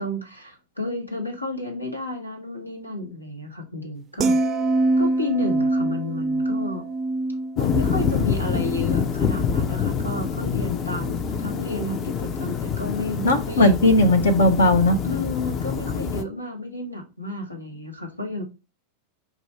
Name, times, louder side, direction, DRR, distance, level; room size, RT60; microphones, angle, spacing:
voice 1, 0.0-4.4 5.0-6.8 7.6-13.8 15.0-18.4, left 2 dB, 85° left, 3 dB, 1.3 m, -31 dB
sound 1, 4.2-10.5 10.8-11.1, right 2 dB, 25° right, 0.4 m, -25 dB
sound 2, 7.6-16.2, left 6 dB, 30° left, 0.5 m, -26 dB
voice 2, 13.2-15.0, left 1 dB, 65° left, 7 dB, 0.8 m, -17 dB
5.1 x 2.4 x 4.3 m, 0.29 s
figure-of-eight pair, 90°, 0 cm